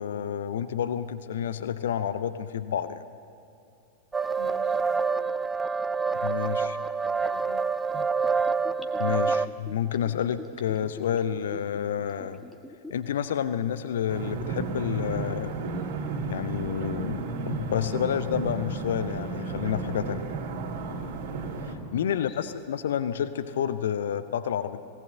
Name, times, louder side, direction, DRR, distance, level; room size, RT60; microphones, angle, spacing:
voice 1, 0.0-3.0 6.2-6.8 9.0-12.4 12.9-15.5 16.3-20.3 21.6-24.8, left 9 dB, 60° left, 12 dB, 0.7 m, -29 dB
sound 1, 4.1-9.5, right 5 dB, 10° right, 0.4 m, -27 dB
voice 2, 4.4-5.4 7.0-7.7 22.0-22.4, left 6 dB, 35° left, 5 dB, 2.0 m, -47 dB
Gurgling / Bathtub (filling or washing), 7.9-13.1 13.4-13.5, left 1 dB, 5° left, 1.3 m, -45 dB
sound 2, 14.1-21.8, right 4 dB, 50° right, 2.7 m, -33 dB
18.5 x 18.0 x 8.0 m, 2.7 s
figure-of-eight pair, 90°, 0 cm